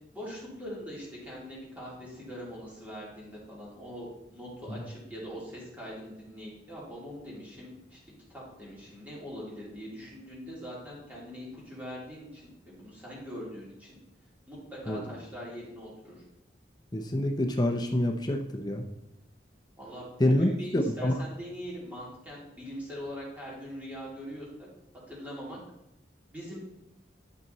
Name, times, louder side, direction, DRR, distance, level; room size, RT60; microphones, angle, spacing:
voice 1, 0.1-8.0 8.3-14.0 14.5-16.2 19.8-24.7 25.1-25.6 26.3-26.6, equal, 10° right, -7 dB, 3.3 m, -42 dB
voice 2, 16.9-18.8 20.2-21.2, left 1 dB, 20° left, 4 dB, 0.6 m, -27 dB
12.0 x 5.9 x 4.1 m, 0.88 s
head